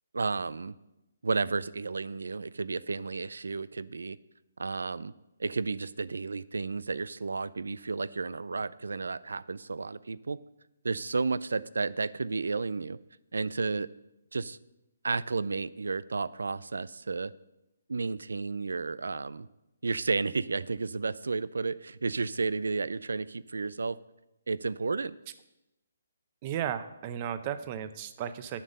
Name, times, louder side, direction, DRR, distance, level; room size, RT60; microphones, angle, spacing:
voice 1, 0.1-0.7 1.2-4.2 4.6-5.1 5.4-10.4 10.8-13.0 13.3-13.9 14.3-14.6 15.0-17.3 17.9-19.5 19.8-24.0 24.5-25.2, right 4 dB, 85° right, 18 dB, 0.4 m, -32 dB
voice 2, 26.4-28.6, right 9 dB, 30° right, 12 dB, 0.6 m, -34 dB
9.4 x 7.3 x 5.3 m, 0.94 s
hypercardioid pair, 155°, 0 cm